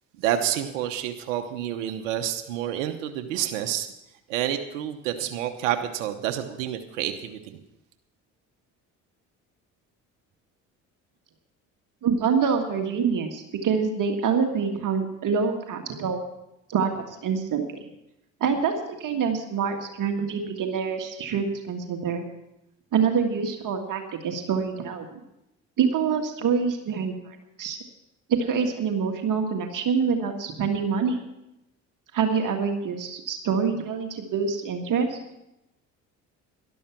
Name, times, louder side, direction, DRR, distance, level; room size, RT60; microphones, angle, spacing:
voice 1, 0.2-3.9 4.3-7.6, right 11 dB, 85° right, 7 dB, 1.0 m, -29 dB
voice 2, 12.0-16.2 16.7-17.7 18.4-18.8 19.0-22.2 22.9-25.2 25.8-27.1 27.6-27.8 28.3-31.2 32.1-35.2, right 6 dB, 55° right, 4 dB, 1.8 m, -26 dB
12.5 x 12.0 x 5.9 m, 0.88 s
hypercardioid pair, 65°, 38 cm